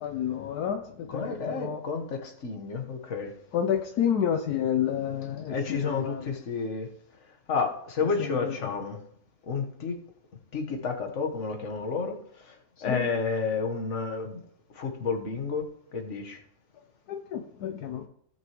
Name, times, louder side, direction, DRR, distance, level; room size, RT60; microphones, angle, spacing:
voice 1, 0.0-1.8 3.5-6.3 8.0-8.6 12.9-13.1 17.1-18.1, left 9 dB, 75° left, 6 dB, 1.2 m, -30 dB
voice 2, 1.1-3.3 5.5-6.9 7.5-9.0 9.5-9.9 10.5-12.1 12.8-14.4 14.8-15.6 15.9-16.4, left 5 dB, 50° left, 3 dB, 1.5 m, -30 dB
17.5 x 6.0 x 3.0 m, 0.70 s
omnidirectional pair, 1.7 m